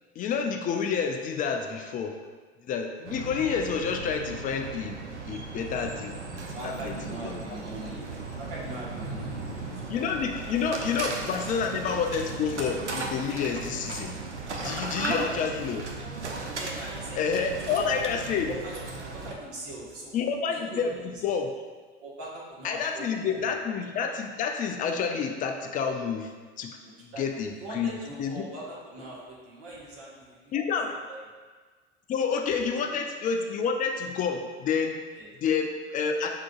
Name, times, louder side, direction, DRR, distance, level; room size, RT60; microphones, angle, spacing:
voice 1, 0.2-2.2 2.6-5.0 5.3-6.9 7.2-7.4 9.9-14.2 14.6-15.8 17.2-18.5 20.1-20.9 21.2-21.5 22.6-26.7 27.0-27.9 28.2-28.5 30.5-30.9 32.1-35.0 35.4-36.3, left 6 dB, 25° left, 4 dB, 0.4 m, -29 dB
sound 1, 3.0-19.3, right 3 dB, 85° right, 0.5 m, -36 dB
voice 2, 6.5-8.0 8.4-10.9 11.4-11.5 15.3-15.8 16.5-17.4 17.9-18.0 18.3-18.7 19.1-20.2 20.5-21.1 22.0-23.5 26.8-27.2 27.6-30.5 30.9-31.2 32.8-32.9 35.1-35.3, right 1 dB, 45° right, -5 dB, 1.5 m, -42 dB
5.4 x 3.7 x 2.4 m, 1.4 s
figure-of-eight pair, 70°, 34 cm